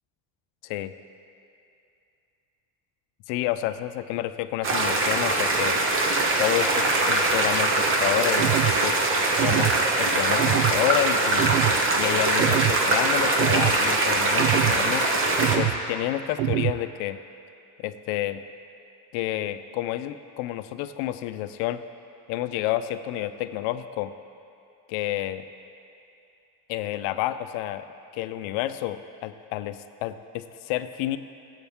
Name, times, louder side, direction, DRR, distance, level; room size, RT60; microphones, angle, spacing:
voice 1, 0.6-0.9 3.3-5.8 6.4-11.6 12.0-15.1 15.4-17.2 17.8-18.4 19.1-21.8 22.3-24.1 24.9-25.4 26.7-27.8 28.1-31.2, left 14 dB, 75° left, 11 dB, 0.6 m, -29 dB
sound 1, 4.6-15.6, right 2 dB, 25° right, 0.9 m, -22 dB
sound 2, 8.4-8.8 9.4-9.8 10.4-10.8 11.4-11.8 12.4-12.8 13.4-13.8 14.4-14.8 15.4-15.8 16.4-16.8, right 14 dB, 60° right, 0.5 m, -25 dB
16.0 x 8.2 x 3.6 m, 2.7 s
cardioid pair, 150°, 48 cm